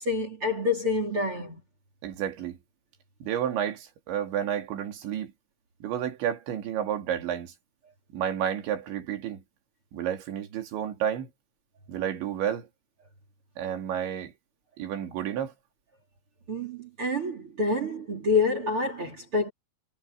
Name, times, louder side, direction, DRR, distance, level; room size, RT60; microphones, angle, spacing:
voice 1, 0.0-1.6 16.5-19.5, left 3 dB, 30° right, 3.9 m, -27 dB
voice 2, 2.0-2.6 3.2-5.3 5.8-7.5 8.1-9.4 9.9-11.3 11.9-12.7 13.6-14.3 14.8-15.5, right 9 dB, 75° right, 4.9 m, -31 dB
omnidirectional pair, 5.3 m